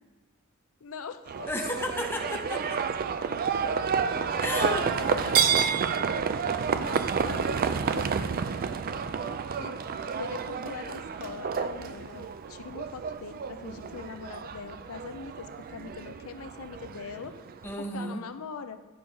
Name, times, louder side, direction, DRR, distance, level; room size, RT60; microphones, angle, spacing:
voice 1, 0.8-1.5 4.6-5.7 6.7-8.3 9.3-9.7 10.2-17.3 17.8-18.8, left 5 dB, 75° left, 9 dB, 0.5 m, -41 dB
Livestock farm animals working animals, 1.3-17.7, right 6 dB, 45° right, 0.4 m, -30 dB
voice 2, 1.5-2.8 4.4-4.8 17.6-18.2, left 1 dB, 10° left, 2 dB, 0.8 m, -32 dB
10.0 x 4.7 x 5.2 m, 1.3 s
head